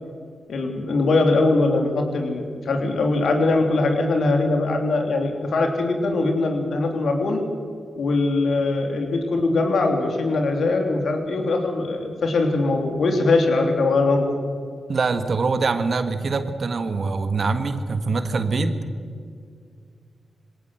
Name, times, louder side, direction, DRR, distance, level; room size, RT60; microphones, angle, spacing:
voice 1, 0.5-7.4 7.9-14.3, left 3 dB, 75° left, 3 dB, 3.4 m, -21 dB
voice 2, 14.9-18.8, right 4 dB, 60° right, 9 dB, 1.5 m, -24 dB
21.0 x 18.0 x 7.9 m, 2.2 s
cardioid pair, 50°, 0 cm